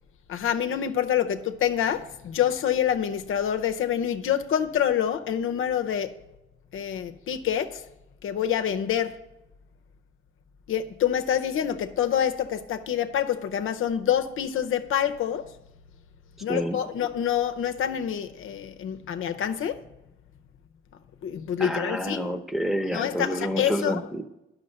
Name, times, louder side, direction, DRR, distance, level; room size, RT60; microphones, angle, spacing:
voice 1, 0.3-6.1 6.7-7.8 8.2-9.2 10.7-15.5 16.4-19.8 21.2-22.3 22.9-24.1, left 9 dB, 85° left, 0.7 m, -27 dB
voice 2, 21.6-24.2, equal, ahead, 0.9 m, -28 dB
9.9 x 6.3 x 6.5 m
cardioid pair, 85°, 21 cm